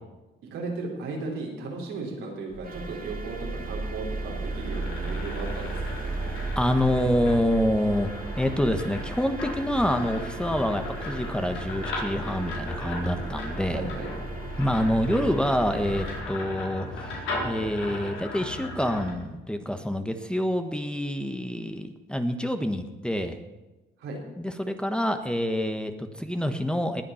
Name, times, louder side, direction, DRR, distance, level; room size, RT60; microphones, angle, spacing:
voice 1, 0.4-6.1 13.7-14.1 24.0-24.2, right 3 dB, 90° right, -2 dB, 4.0 m, -35 dB
sound 1, 2.5-16.2, right 3 dB, 45° right, 2.1 m, -35 dB
sound 2, 4.1-19.1, left 2 dB, 85° left, 4.7 m, -37 dB
voice 2, 6.5-13.9 14.6-23.4 24.4-27.0, equal, 5° left, 7 dB, 1.2 m, -27 dB
20.0 x 8.5 x 5.8 m, 1.1 s
cardioid pair, 90°, 20 cm